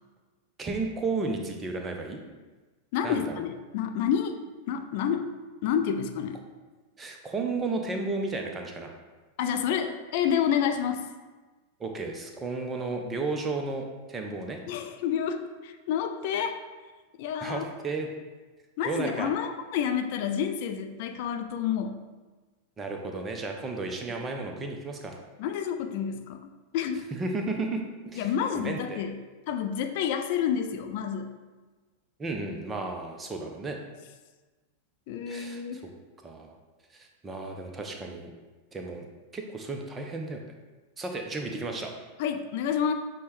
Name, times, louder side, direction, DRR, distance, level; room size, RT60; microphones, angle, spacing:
voice 1, 0.6-2.2 3.0-3.3 7.0-8.9 11.8-14.6 17.4-18.1 18.8-19.3 22.8-25.2 27.1-29.0 32.2-33.8 35.3-35.6 36.2-36.6 36.9-38.3 38.7-39.1 39.3-40.4 41.0-41.9, right 3 dB, 20° right, 3 dB, 0.6 m, -33 dB
voice 2, 2.9-4.4 4.7-5.3 5.6-6.4 9.4-11.1 14.7-16.5 17.2-17.6 18.8-22.0 25.4-26.4 26.7-27.1 28.2-29.2 29.5-31.3 35.1-35.8 42.2-42.9, left 8 dB, 50° left, 6 dB, 0.3 m, -29 dB
6.5 x 2.2 x 3.2 m, 1.3 s
figure-of-eight pair, 90°, 0 cm